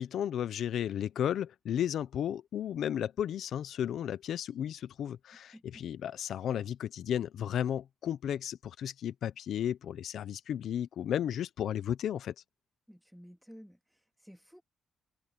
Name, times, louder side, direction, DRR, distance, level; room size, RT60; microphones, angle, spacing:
voice 1, 0.0-12.3, left 10 dB, 70° left, 1.0 m, -34 dB
voice 2, 5.5-5.8 12.9-14.6, equal, ahead, 2.4 m, -54 dB
cardioid pair, 90°, 0 cm